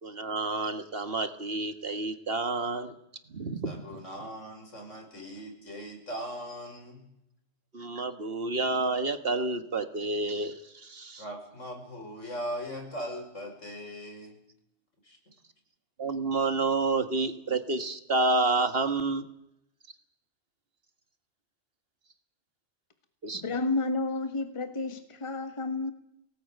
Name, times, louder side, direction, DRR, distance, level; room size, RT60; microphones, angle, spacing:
voice 1, 0.0-2.9 3.3-3.7 7.7-11.2 16.0-19.2 23.2-23.4, right 3 dB, 50° right, 9 dB, 1.6 m, -29 dB
voice 2, 3.6-7.1 11.2-14.4 15.0-15.2, equal, 70° left, 3 dB, 5.9 m, -39 dB
voice 3, 23.3-25.9, left 3 dB, 25° left, 8 dB, 1.6 m, -31 dB
23.0 x 18.5 x 9.1 m, 0.82 s
omnidirectional pair, 1.3 m